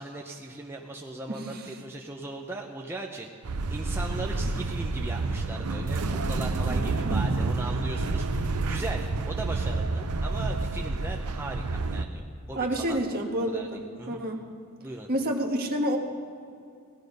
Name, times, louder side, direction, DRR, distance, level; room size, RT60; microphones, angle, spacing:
voice 1, 0.0-3.3 3.7-13.0 13.5-14.2 14.8-15.1, right 2 dB, 10° right, 0 dB, 0.7 m, -38 dB
voice 2, 1.3-1.6 6.7-7.2 12.6-13.8 14.1-14.4 15.1-16.0, right 1 dB, 45° right, 3 dB, 1.4 m, -29 dB
sound 1, 3.4-12.1, right 3 dB, 90° right, 0.7 m, -29 dB
17.5 x 12.0 x 5.3 m, 2.5 s
head